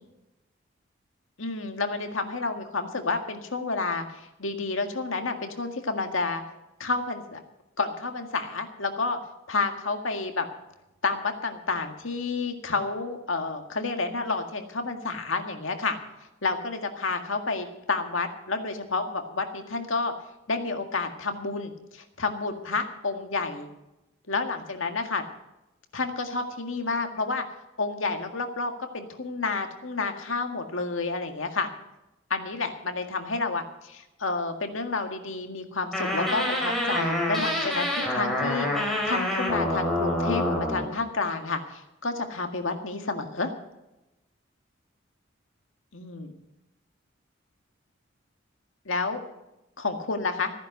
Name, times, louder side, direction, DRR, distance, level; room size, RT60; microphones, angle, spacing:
voice 1, 1.4-6.4 6.8-7.4 7.8-9.2 9.5-10.5 11.0-16.0 16.4-20.1 20.5-23.7 24.3-25.2 25.9-27.4 27.8-31.7 32.3-43.5 45.9-46.3 48.9-49.2 49.8-50.5, left 3 dB, 80° left, 5 dB, 1.9 m, -30 dB
sound 1, 35.9-40.9, left 1 dB, ahead, 3.8 m, -27 dB
15.0 x 10.0 x 6.6 m, 0.94 s
head